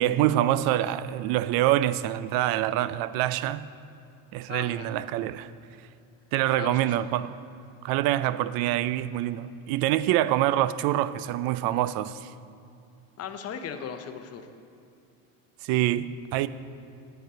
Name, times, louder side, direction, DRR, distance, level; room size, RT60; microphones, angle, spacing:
voice 1, 0.0-3.7 4.3-5.5 6.3-7.3 7.8-12.3 15.6-16.5, right 13 dB, 60° right, 0.5 m, -25 dB
voice 2, 4.5-4.9 6.6-7.0 13.2-14.5, left 7 dB, 35° left, 0.8 m, -37 dB
9.2 x 8.1 x 5.0 m
supercardioid pair, 120°, 40 cm